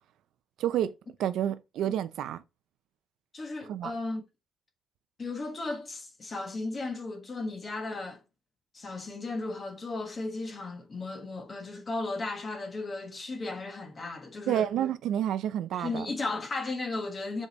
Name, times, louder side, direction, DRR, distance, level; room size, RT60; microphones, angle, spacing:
voice 1, 0.6-2.4 3.7-3.9 14.5-16.1, right 10 dB, 75° right, 0.8 m, -29 dB
voice 2, 3.3-4.2 5.2-8.2 8.7-14.7 15.7-17.5, left 3 dB, 25° left, 1.5 m, -35 dB
7.3 x 5.2 x 4.1 m
cardioid pair, 170°, 0 cm